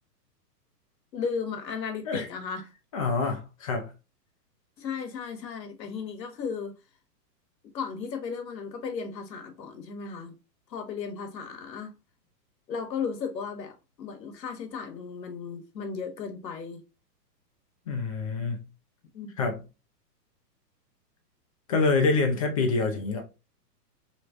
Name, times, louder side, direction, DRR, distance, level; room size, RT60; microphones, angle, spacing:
voice 1, 1.1-2.6 4.8-6.7 7.7-10.3 10.7-11.9 12.7-16.8 19.1-19.3, left 6 dB, 85° left, 1.1 m, -35 dB
voice 2, 2.9-3.9 17.9-18.6 19.4-19.6 21.7-23.2, left 3 dB, 25° left, 0.4 m, -26 dB
3.1 x 3.0 x 2.4 m
hypercardioid pair, 140°, 49 cm